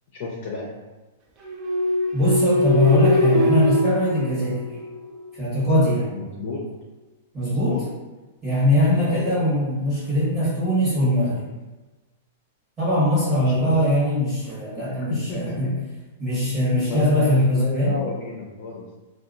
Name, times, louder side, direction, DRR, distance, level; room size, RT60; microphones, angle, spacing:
voice 1, 0.2-0.7 6.1-6.6 7.4-7.8 9.1-9.5 13.4-13.7 14.9-15.7 16.7-18.9, left 3 dB, 50° left, -3 dB, 0.6 m, -32 dB
sound 1, 1.4-5.3, left 1 dB, 35° right, 0.4 m, -22 dB
voice 2, 2.1-4.6 5.3-6.1 7.3-7.8 8.4-11.5 12.8-15.7 16.2-18.0, left 1 dB, 15° right, -11 dB, 1.2 m, -21 dB
2.7 x 2.2 x 2.5 m, 1.2 s
hypercardioid pair, 145°, 0 cm